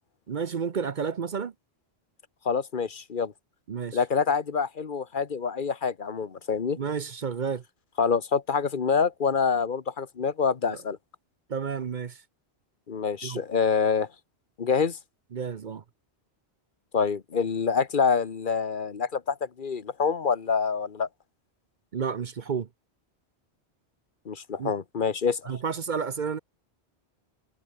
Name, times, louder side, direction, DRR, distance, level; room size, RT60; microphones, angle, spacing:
voice 1, 0.3-1.5 3.7-4.0 6.8-7.6 10.7-10.8 11.5-12.2 13.2-13.4 15.3-15.8 21.9-22.7 24.6-24.7 25.5-26.4, right 6 dB, 50° right, 0.8 m, -31 dB
voice 2, 2.4-3.3 3.9-6.8 8.0-11.0 12.9-14.1 14.6-15.0 16.9-21.1 24.3-25.5, left 5 dB, 50° left, 1.3 m, -26 dB
omnidirectional pair, 1.1 m